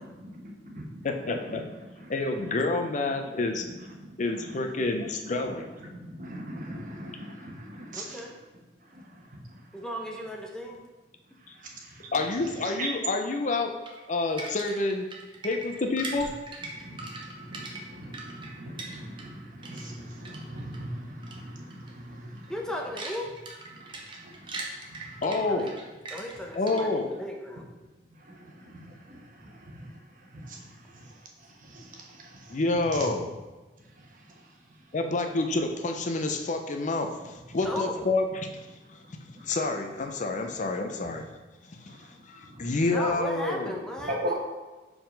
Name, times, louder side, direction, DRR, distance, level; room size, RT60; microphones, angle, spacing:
voice 1, 0.0-2.7 3.0-8.4 8.8-9.9 11.3-12.9 16.6-22.5 23.7-25.7 26.2-26.5 27.8-33.1 33.8-35.0 37.1-37.3 37.6-37.7 38.0-38.1 38.8-39.5 40.3-40.6 41.0-41.2 41.8-42.8 44.0-44.4, right 1 dB, 50° right, 0 dB, 1.1 m, -42 dB
voice 2, 1.0-1.6 2.1-3.7 4.2-5.8 12.1-13.8 14.1-15.1 15.4-16.3 25.2-25.7 26.5-27.1 32.5-33.3 34.9-39.0 39.4-41.2 41.7-43.7, left 2 dB, 45° left, 5 dB, 0.5 m, -28 dB
voice 3, 7.9-8.3 9.7-10.8 22.5-23.3 25.5-25.7 26.1-27.7 37.6-38.1 42.9-44.2, left 1 dB, 5° left, 0 dB, 0.7 m, -35 dB
sound 1, 13.9-19.4 19.6-20.8 21.2-21.4 21.7-21.9 22.3-27.1, right 2 dB, 30° right, 0.8 m, -41 dB
4.9 x 3.8 x 5.1 m, 1.2 s
head